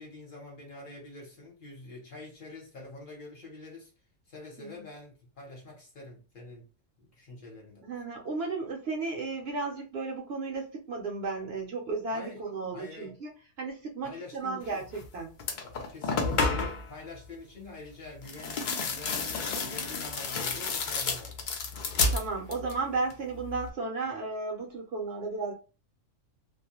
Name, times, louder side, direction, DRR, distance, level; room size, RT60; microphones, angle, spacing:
voice 1, 0.0-3.9 4.3-6.7 7.0-7.9 12.1-12.4 12.7-13.2 14.0-14.8 15.9-21.5, left 2 dB, 45° left, 0.9 m, -46 dB
voice 2, 7.8-13.3 13.6-14.8 15.1-15.3 22.1-25.5, right 3 dB, 60° right, 0.8 m, -34 dB
sound 1, 14.9-15.1 15.4-16.9 18.2-22.8 23.1-23.7, left 4 dB, 60° left, 0.5 m, -31 dB
2.3 x 2.1 x 2.7 m
omnidirectional pair, 1.3 m